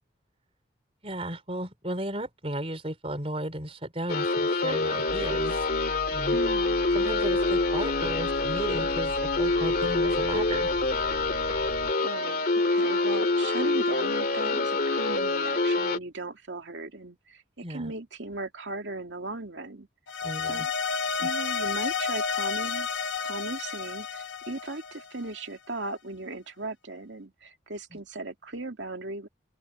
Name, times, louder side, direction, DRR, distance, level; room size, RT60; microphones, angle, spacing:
voice 1, 1.0-5.7 6.1-6.4 6.9-10.7 17.6-17.9 20.2-20.7 21.2-21.3, right 1 dB, 30° right, 4.4 m, -34 dB
sound 1, 4.1-16.0, left 3 dB, 50° left, 2.4 m, -26 dB
sound 2, 5.1-11.9, equal, 5° right, 3.4 m, -41 dB
voice 2, 6.3-6.8 12.0-19.9 20.4-20.7 21.2-22.9 23.2-29.3, right 2 dB, 75° right, 2.4 m, -37 dB
sound 3, 20.1-25.4, left 5 dB, 85° left, 1.3 m, -31 dB
open air
head